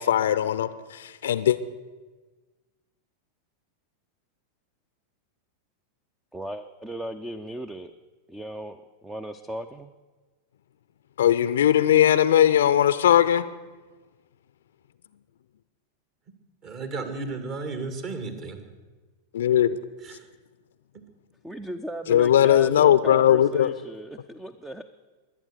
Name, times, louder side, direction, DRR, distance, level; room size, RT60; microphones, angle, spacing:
voice 1, 0.0-1.6 11.2-13.5 19.3-19.8 22.1-23.7, left 10 dB, 60° left, 15 dB, 0.6 m, -19 dB
voice 2, 6.3-7.9 8.3-9.9 21.4-24.8, right 1 dB, 5° right, 11 dB, 0.6 m, -37 dB
voice 3, 16.6-18.6 20.0-20.3, right 3 dB, 40° right, 8 dB, 2.1 m, -34 dB
22.5 x 8.8 x 6.8 m, 1.3 s
figure-of-eight pair, 90°, 0 cm